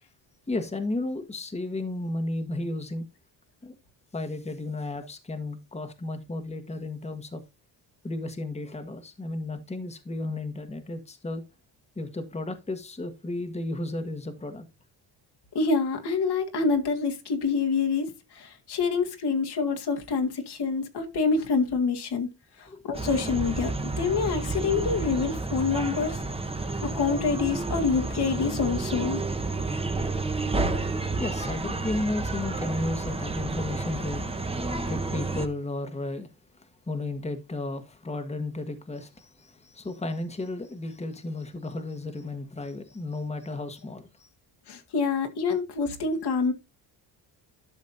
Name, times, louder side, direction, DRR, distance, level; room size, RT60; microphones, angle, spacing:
voice 1, 0.5-3.1 3.6-3.7 4.1-7.4 8.0-11.4 11.9-14.7 22.7-22.8 30.3-44.3, left 2 dB, 15° left, 1.4 m, -34 dB
voice 2, 15.5-22.3 22.6-26.2 26.8-29.2 44.7-46.5, left 4 dB, 60° left, 2.0 m, -26 dB
sound 1, 22.9-35.5, right 3 dB, 15° right, 1.2 m, -30 dB
12.0 x 6.4 x 2.7 m
cardioid pair, 100°, 44 cm